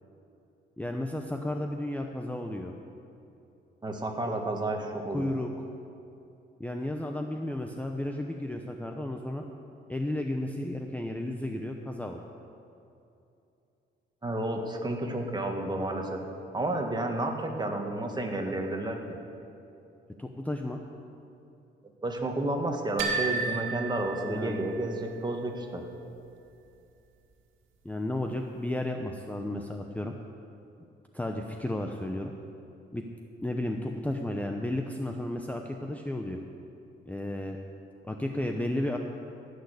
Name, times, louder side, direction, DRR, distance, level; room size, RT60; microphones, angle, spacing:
voice 1, 0.8-2.7 5.1-5.5 6.6-9.4 9.9-12.2 20.2-20.8 24.3-24.6 27.8-30.1 31.1-32.3 32.9-33.0 33.4-36.4 37.1-37.6 38.1-39.0, left 1 dB, 5° left, 3 dB, 0.8 m, -33 dB
voice 2, 3.8-5.3 14.2-16.2 16.5-19.0 22.0-25.8, right 1 dB, 20° right, 2 dB, 1.9 m, -31 dB
sound 1, 23.0-24.9, right 4 dB, 80° right, 1.9 m, -32 dB
16.5 x 6.7 x 8.3 m, 2.7 s
cardioid pair, 90°, 20 cm